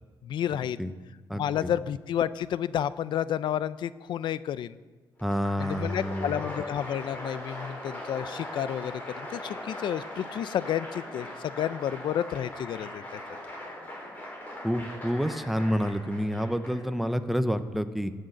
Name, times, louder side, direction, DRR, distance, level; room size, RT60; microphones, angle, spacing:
voice 1, 0.2-0.9 1.3-4.8 5.6-13.2, left 10 dB, 75° left, 16 dB, 0.5 m, -31 dB
voice 2, 1.3-1.7 5.2-6.4 14.6-18.1, equal, ahead, 10 dB, 0.7 m, -28 dB
Applause, 5.2-17.1, left 1 dB, 20° left, 3.7 m, -40 dB
18.0 x 6.6 x 7.9 m, 1.4 s
wide cardioid pair, 160°, 8 cm